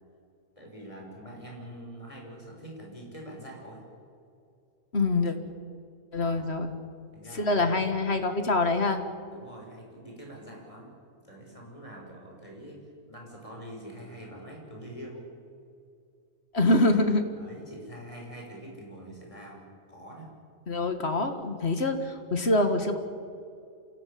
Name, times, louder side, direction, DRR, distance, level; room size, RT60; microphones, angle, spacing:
voice 1, 0.6-3.8 6.2-6.5 7.1-8.0 9.3-10.9 11.2-15.2 17.3-19.6 19.9-20.3, equal, 20° left, -1 dB, 6.5 m, -44 dB
voice 2, 4.9-5.4 6.1-6.7 7.3-9.0 16.5-17.3 20.7-23.0, left 2 dB, 40° left, 7 dB, 2.1 m, -25 dB
27.5 x 16.5 x 8.7 m, 2.5 s
omnidirectional pair, 1.6 m